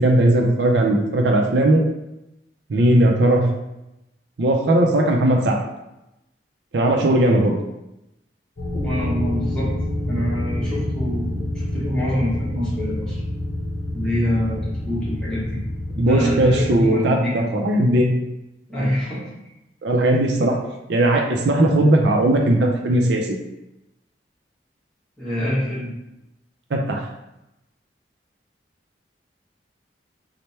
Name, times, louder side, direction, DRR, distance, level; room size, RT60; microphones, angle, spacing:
voice 1, 0.0-1.8 2.7-3.4 4.4-5.6 6.7-7.6 16.0-18.2 19.8-20.6 20.9-23.4 26.7-27.0, right 1 dB, 70° right, 1 dB, 0.5 m, -18 dB
sound 1, 8.6-16.8, left 1 dB, 45° left, 0.7 m, -27 dB
voice 2, 8.8-9.7 10.1-13.2 13.9-14.6 14.8-15.6 15.9-17.7 18.7-19.2 25.2-25.9, equal, 5° left, -9 dB, 1.2 m, -25 dB
3.2 x 2.1 x 4.2 m, 0.93 s
head